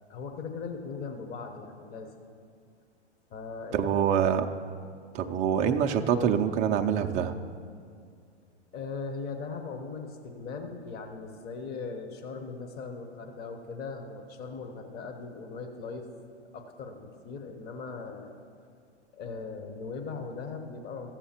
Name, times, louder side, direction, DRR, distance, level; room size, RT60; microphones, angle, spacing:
voice 1, 0.1-2.2 3.3-4.0 8.7-16.1 16.5-18.3 19.1-21.1, left 4 dB, 25° left, 5 dB, 1.1 m, -39 dB
voice 2, 3.7-4.5 5.1-7.3, right 8 dB, 20° right, 4 dB, 0.4 m, -25 dB
13.5 x 7.4 x 4.4 m, 2.2 s
hypercardioid pair, 115°, 35 cm